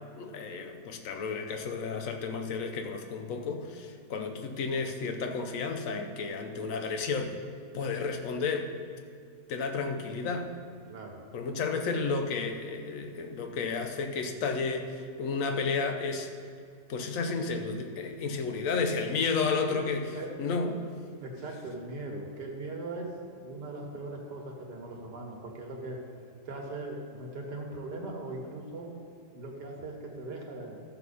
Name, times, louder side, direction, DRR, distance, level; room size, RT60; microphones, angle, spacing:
voice 1, 0.2-7.4 7.7-8.7 9.5-10.5 11.3-16.3 16.9-20.8, left 4 dB, 55° left, 5 dB, 1.1 m, -32 dB
voice 2, 10.9-11.2 19.8-20.3 21.2-26.0 26.5-28.9 29.3-30.8, right 2 dB, 70° right, 0 dB, 2.0 m, -40 dB
14.0 x 7.0 x 4.2 m, 2.4 s
omnidirectional pair, 1.9 m